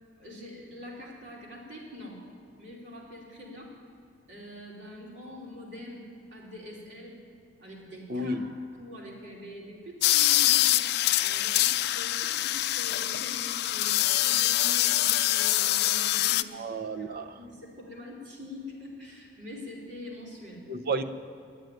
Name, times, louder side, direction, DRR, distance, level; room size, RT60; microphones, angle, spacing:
voice 1, 0.2-2.2 2.6-3.8 4.3-7.2 7.6-8.4 8.8-10.7 11.2-20.6, left 1 dB, 75° right, -4 dB, 3.4 m, -44 dB
voice 2, 8.1-8.5 16.5-17.4 20.7-21.0, right 2 dB, 55° right, 6 dB, 0.7 m, -32 dB
sound 1, 10.0-16.4, left 15 dB, 60° left, 0.3 m, -25 dB
10.5 x 9.7 x 9.2 m, 2.4 s
head